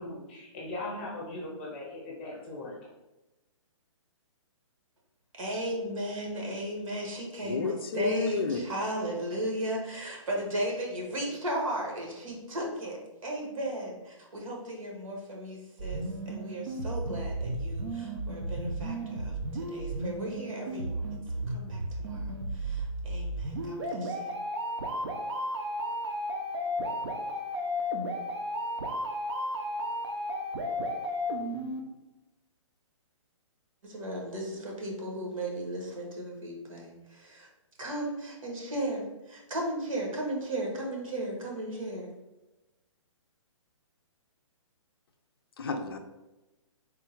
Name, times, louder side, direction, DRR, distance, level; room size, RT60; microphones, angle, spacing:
voice 1, 0.0-2.8, left 2 dB, 20° left, -4 dB, 0.7 m, -39 dB
voice 2, 5.4-24.4 33.8-37.5 37.8-42.1, right 1 dB, 80° right, 0 dB, 1.4 m, -36 dB
voice 3, 7.4-8.6 45.6-46.0, left 4 dB, 45° left, 5 dB, 0.4 m, -30 dB
sound 1, 15.8-31.8, equal, 55° right, 0.7 m, -34 dB
3.6 x 2.3 x 4.4 m, 1.0 s
hypercardioid pair, 175°, 17 cm